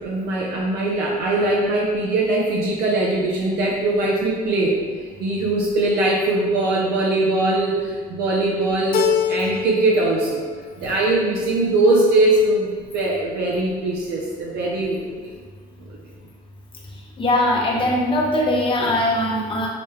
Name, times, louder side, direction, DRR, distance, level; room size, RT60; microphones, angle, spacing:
voice 1, 0.0-9.0 9.3-10.4 10.8-15.0 15.9-16.0, right 2 dB, 80° right, -3 dB, 0.7 m, -21 dB
Keyboard (musical), 8.9-10.0 10.3-11.1, left 8 dB, 60° left, 0.4 m, -24 dB
voice 2, 17.2-19.7, left 1 dB, 30° left, -3 dB, 1.0 m, -20 dB
5.9 x 2.3 x 3.2 m, 1.5 s
cardioid pair, 110°, 17 cm